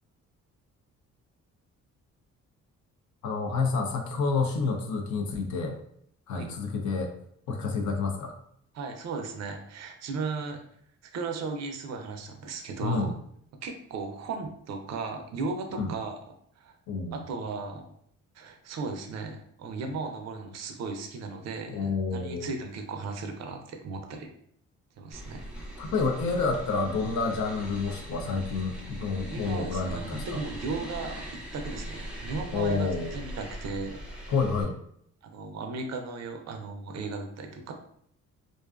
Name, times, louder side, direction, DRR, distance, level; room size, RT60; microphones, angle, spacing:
voice 1, 3.2-5.8 6.3-7.1 7.5-8.3 12.8-13.1 15.7-15.9 16.9-17.2 21.7-22.6 25.8-30.4 32.5-33.1 34.3-34.8, left 4 dB, 70° left, 2 dB, 0.5 m, -29 dB
voice 2, 8.7-10.6 11.1-13.1 13.5-16.1 16.6-16.7 17.1-17.8 18.3-24.3 25.0-25.4 29.3-34.3 35.2-37.7, right 4 dB, 60° right, 4 dB, 0.5 m, -36 dB
sound 1, 25.1-34.6, equal, 5° right, 0.6 m, -40 dB
2.5 x 2.3 x 2.3 m, 0.67 s
cardioid pair, 90°, 30 cm